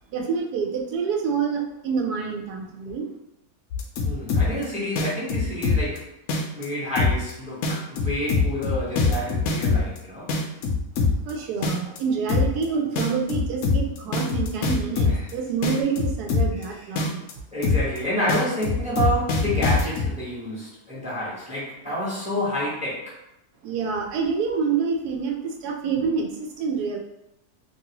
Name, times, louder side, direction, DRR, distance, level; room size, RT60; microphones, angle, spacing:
voice 1, 0.1-3.1 11.2-17.3 23.6-27.0, right 5 dB, 80° right, 1 dB, 1.1 m, -27 dB
sound 1, 3.7-4.6 5.0-6.0 6.3-6.6 7.0-7.3 7.6-10.0 10.3-11.3 11.6-12.0 12.3-12.6 13.0-15.3 15.6-16.6 17.0-17.3 17.6-18.0 18.3-20.1, left 4 dB, 70° left, 0.9 m, -23 dB
voice 2, 4.0-6.1 6.6-10.3 15.0-15.3 15.6-15.8 17.5-23.2, equal, 5° right, -8 dB, 0.7 m, -29 dB
2.9 x 2.6 x 2.8 m, 0.84 s
omnidirectional pair, 1.7 m